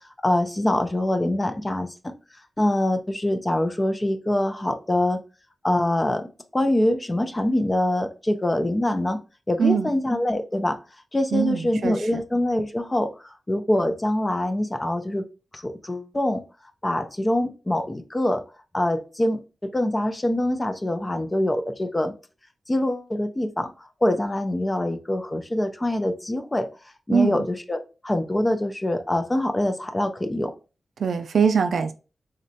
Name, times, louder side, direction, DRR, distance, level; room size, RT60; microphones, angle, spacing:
voice 1, 0.2-1.9 2.6-5.2 5.6-6.3 6.5-9.2 9.5-10.8 11.1-15.2 15.5-16.4 16.8-18.4 18.7-22.1 22.7-23.7 24.0-26.7 27.1-30.5, left 1 dB, 20° left, 8 dB, 0.4 m, -24 dB
voice 2, 9.6-9.9 11.3-12.2 27.1-27.4 31.0-31.9, right 6 dB, 80° right, 8 dB, 0.3 m, -22 dB
3.8 x 2.1 x 2.6 m, 0.32 s
wide cardioid pair, 115°, 0 cm